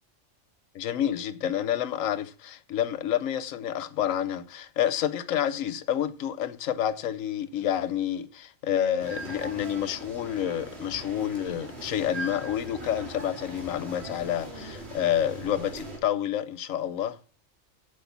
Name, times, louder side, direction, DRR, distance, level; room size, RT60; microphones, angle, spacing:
voice 1, 0.7-17.2, left 10 dB, 90° left, 1.1 m, -29 dB
sound 1, 9.0-16.0, right 2 dB, 55° right, 2.8 m, -40 dB
8.1 x 7.8 x 6.9 m
omnidirectional pair, 1.3 m